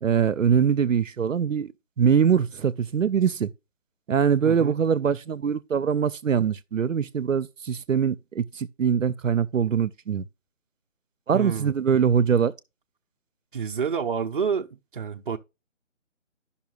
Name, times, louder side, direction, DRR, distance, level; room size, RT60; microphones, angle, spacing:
voice 1, 0.0-1.7 2.0-3.5 4.1-10.2 11.3-12.5, right 7 dB, 85° right, 0.6 m, -23 dB
voice 2, 4.4-4.8 11.3-11.7 13.5-15.4, right 6 dB, 45° right, 0.6 m, -28 dB
13.0 x 5.7 x 2.3 m
figure-of-eight pair, 155°, 38 cm